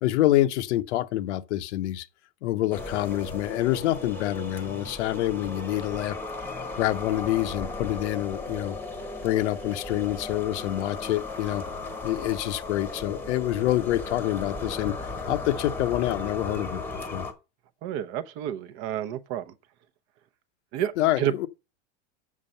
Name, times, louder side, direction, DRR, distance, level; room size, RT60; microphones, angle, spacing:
voice 1, 0.0-2.1 2.4-6.2 6.8-8.8 9.2-11.6 12.0-16.8 17.1-17.3 21.0-21.5, left 15 dB, 80° left, 0.9 m, -27 dB
sound 1, 2.7-17.3, left 3 dB, 5° left, 1.0 m, -36 dB
voice 2, 17.8-19.5 20.7-21.3, right 11 dB, 35° right, 0.7 m, -30 dB
7.4 x 6.4 x 5.5 m
supercardioid pair, 170°, 35 cm